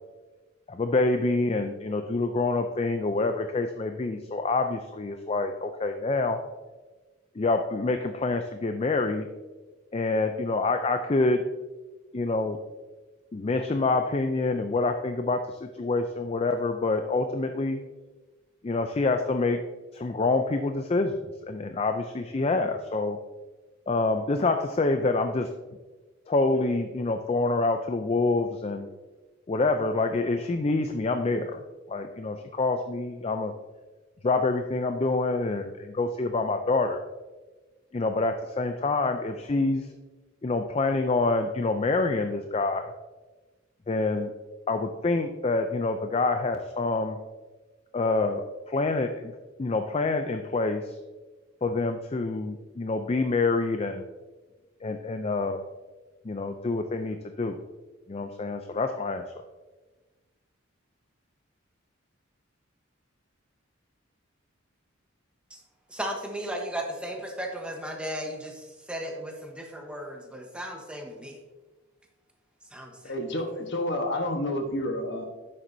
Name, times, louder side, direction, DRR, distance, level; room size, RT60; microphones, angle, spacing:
voice 1, 0.7-6.4 7.4-9.3 9.9-11.4 12.1-12.6 13.3-17.8 18.6-19.6 19.9-23.2 23.9-25.5 26.3-28.9 29.5-31.6 31.9-33.5 34.2-37.0 37.9-39.9 40.4-42.9 43.9-44.3 44.7-47.2 47.9-48.4 48.7-49.3 49.6-51.0 51.6-54.0 54.8-55.6 56.2-57.6 58.1-59.2, left 3 dB, 30° left, 7 dB, 0.4 m, -26 dB
voice 2, 65.9-71.4 72.7-73.1, equal, 5° right, 1 dB, 1.0 m, -36 dB
voice 3, 73.0-75.2, left 1 dB, 60° left, 4 dB, 1.2 m, -29 dB
10.0 x 7.5 x 2.7 m, 1.2 s
head